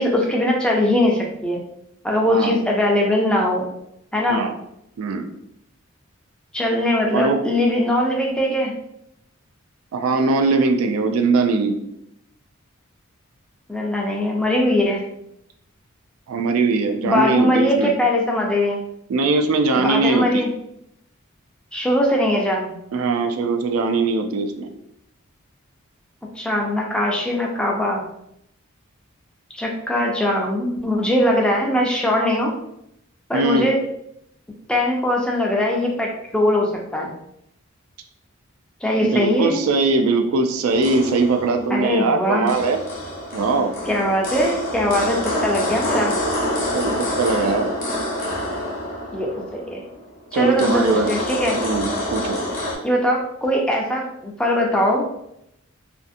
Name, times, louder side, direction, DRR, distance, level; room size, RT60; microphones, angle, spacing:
voice 1, 0.0-1.6 2.0-3.6 4.1-4.4 6.5-8.7 13.7-15.0 17.0-18.8 19.8-20.5 21.7-22.7 26.4-28.0 29.5-32.5 33.3-33.8 34.7-37.1 38.8-39.5 41.7-42.5 43.9-46.2 49.1-49.8 50.3-51.6 52.8-55.0, left 1 dB, 5° left, -2 dB, 0.3 m, -21 dB
voice 2, 5.0-5.3 7.1-7.4 9.9-11.8 16.3-17.9 19.1-20.5 22.9-24.7 33.3-33.7 39.0-42.8 43.3-43.7 46.7-47.7 50.3-51.1 51.5-52.4, right 3 dB, 90° right, 6 dB, 0.3 m, -21 dB
sound 1, 40.7-52.8, left 1 dB, 40° left, 0.7 m, -27 dB
2.5 x 2.4 x 2.5 m, 0.78 s
head